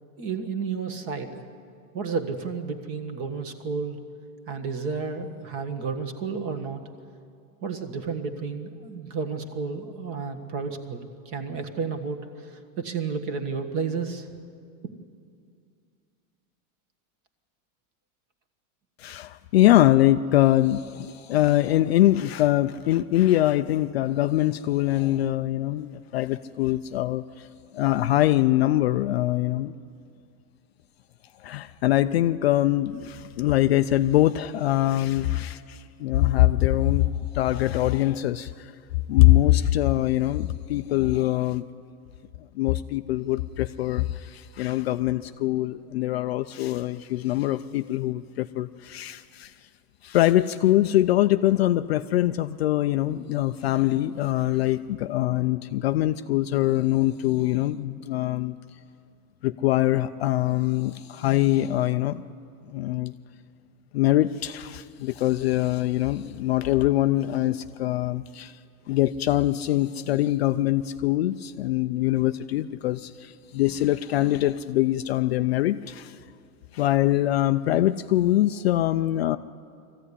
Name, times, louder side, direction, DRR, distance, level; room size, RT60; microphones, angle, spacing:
voice 1, 0.2-1.4 1.9-4.0 4.5-6.8 7.6-14.3, right 5 dB, 30° right, 6 dB, 1.5 m, -32 dB
voice 2, 19.0-27.5 27.7-29.7 31.4-37.1 37.3-38.7 39.1-41.6 42.6-49.5 50.0-58.5 59.4-62.4 62.7-63.1 63.9-68.6 68.9-76.2 76.7-79.4, left 15 dB, 45° left, 10 dB, 0.4 m, -23 dB
21.5 x 15.0 x 9.8 m, 2.3 s
supercardioid pair, 160°, 45 cm